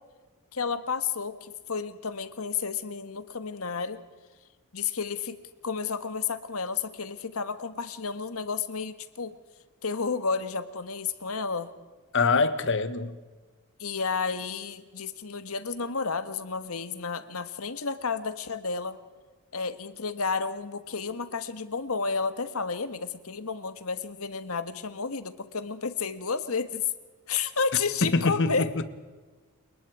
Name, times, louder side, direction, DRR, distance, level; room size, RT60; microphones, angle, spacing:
voice 1, 0.5-4.0 4.7-5.4 5.6-9.3 9.8-11.7 13.8-19.0 19.5-26.9 27.3-28.7, left 5 dB, 80° left, 1.5 m, -31 dB
voice 2, 12.1-13.1 28.0-28.8, left 3 dB, 60° left, 1.3 m, -24 dB
29.5 x 19.5 x 4.8 m
head